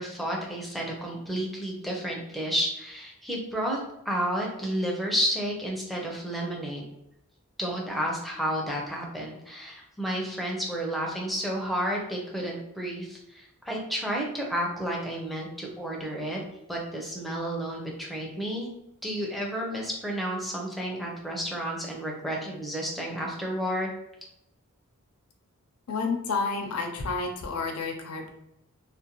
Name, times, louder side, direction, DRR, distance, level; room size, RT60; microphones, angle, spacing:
voice 1, 0.0-3.8 4.1-6.8 7.6-16.4 16.7-18.7 19.0-23.9, equal, ahead, -2 dB, 0.5 m, -31 dB
voice 2, 25.9-28.3, left 4 dB, 75° left, 3 dB, 0.5 m, -30 dB
2.5 x 2.1 x 2.8 m, 0.82 s
head